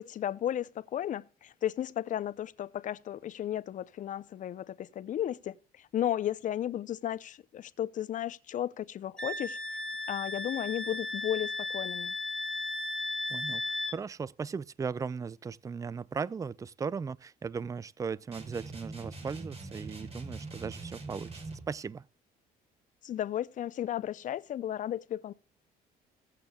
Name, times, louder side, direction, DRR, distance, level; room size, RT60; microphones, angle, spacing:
voice 1, 0.0-9.6 10.1-12.1 23.0-25.3, left 11 dB, 50° left, 0.6 m, -34 dB
Wind instrument woodwind instrument, 9.2-14.0, left 2 dB, 5° left, 1.6 m, -35 dB
voice 2, 13.3-22.0, right 5 dB, 20° right, 0.4 m, -37 dB
sound 1, 18.3-21.7, right 3 dB, 35° right, 4.5 m, -43 dB
16.5 x 8.3 x 2.3 m
cardioid pair, 110°, 17 cm